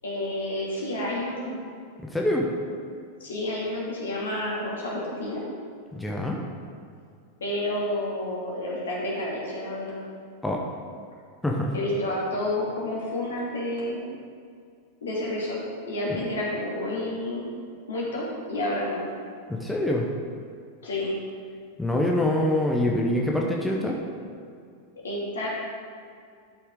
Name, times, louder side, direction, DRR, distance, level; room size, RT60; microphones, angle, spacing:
voice 1, 0.0-1.6 2.8-2.9 3.2-5.4 7.4-10.0 11.7-14.0 15.0-17.5 17.9-19.1 20.8-21.2 25.0-25.5, left 1 dB, 65° left, -4 dB, 2.3 m, -30 dB
voice 2, 2.1-2.5 5.9-6.4 10.4-10.6 11.4-11.7 19.5-20.1 21.8-24.0, left 1 dB, 5° left, -1 dB, 0.9 m, -25 dB
11.5 x 5.8 x 3.7 m, 2.3 s
figure-of-eight pair, 90°, 0 cm